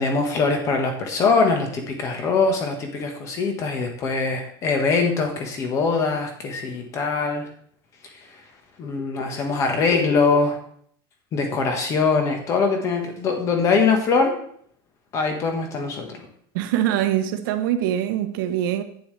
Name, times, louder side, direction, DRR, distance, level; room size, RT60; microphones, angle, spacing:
voice 1, 0.0-7.5 8.8-10.6 11.3-14.3 15.1-16.2, left 4 dB, 25° left, 1.4 m, -22 dB
voice 2, 16.5-18.8, right 11 dB, 65° right, 1.0 m, -23 dB
11.0 x 9.4 x 3.3 m
supercardioid pair, 180°, 12 cm